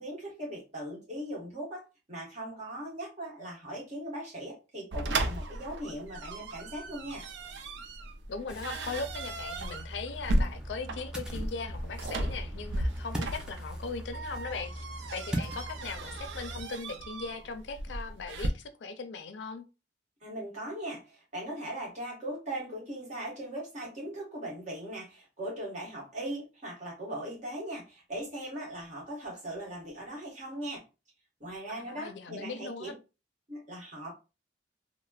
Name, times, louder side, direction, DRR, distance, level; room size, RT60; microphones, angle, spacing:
voice 1, 0.0-7.2 20.2-30.8 31.4-32.9 33.5-34.1, right 1 dB, 40° right, 1.3 m, -39 dB
sound 1, 4.9-18.5, right 1 dB, 90° right, 0.4 m, -36 dB
voice 2, 8.3-14.8 15.1-19.6 31.8-32.9, left 4 dB, 80° left, 0.4 m, -39 dB
Ocean, 8.5-16.6, right 1 dB, 5° right, 0.5 m, -40 dB
3.1 x 2.1 x 2.3 m
head